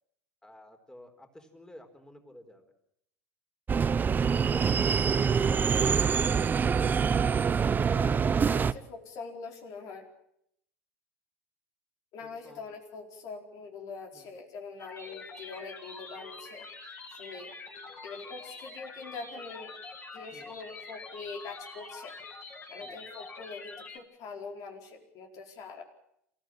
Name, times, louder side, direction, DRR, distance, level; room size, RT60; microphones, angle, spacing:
voice 1, 0.4-2.7 4.5-6.7 12.2-12.7 14.1-14.4 20.3-20.6 22.8-23.0, left 1 dB, 10° left, 6 dB, 4.5 m, -52 dB
sound 1, 3.7-8.7, right 6 dB, 25° right, 0.8 m, -25 dB
voice 2, 7.9-10.1 12.1-17.5 18.0-19.8 20.1-22.2 22.7-25.8, left 4 dB, 50° left, 3 dB, 4.6 m, -44 dB
sound 2, 14.8-24.0, left 3 dB, 30° left, 7.0 m, -45 dB
27.5 x 15.0 x 8.9 m, 0.76 s
hypercardioid pair, 80°, 7 cm